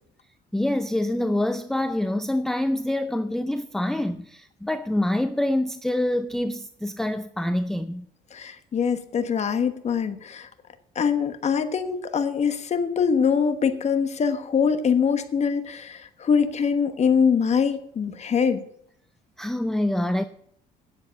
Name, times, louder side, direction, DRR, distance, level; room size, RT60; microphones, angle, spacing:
voice 1, 0.5-8.1 19.4-20.3, left 1 dB, ahead, 0.5 m, -26 dB
voice 2, 8.3-10.5 10.9-18.6, left 6 dB, 40° left, 1.2 m, -23 dB
10.0 x 7.7 x 8.0 m
cardioid pair, 110°, 17 cm